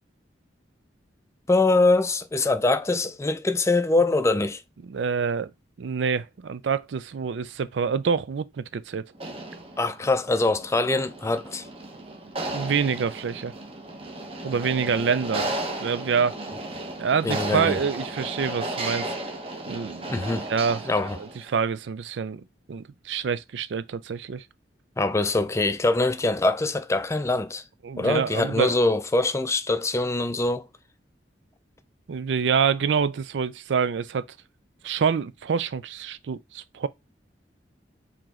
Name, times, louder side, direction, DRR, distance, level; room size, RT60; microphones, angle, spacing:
voice 1, 1.5-4.6 9.8-11.7 17.2-17.8 20.1-20.5 20.9-21.2 25.0-27.6 28.0-30.7, left 2 dB, 15° left, 0.4 m, -23 dB
voice 2, 4.9-5.5 5.8-9.1 12.5-13.5 14.4-15.5 15.8-16.4 17.0-19.1 19.7-20.2 20.5-20.8 21.1-24.4 27.8-28.8 32.1-34.2 34.8-36.9, right 6 dB, 80° right, 0.4 m, -26 dB
sound 1, 9.1-21.5, right 2 dB, 35° right, 1.1 m, -34 dB
4.8 x 2.9 x 3.7 m
head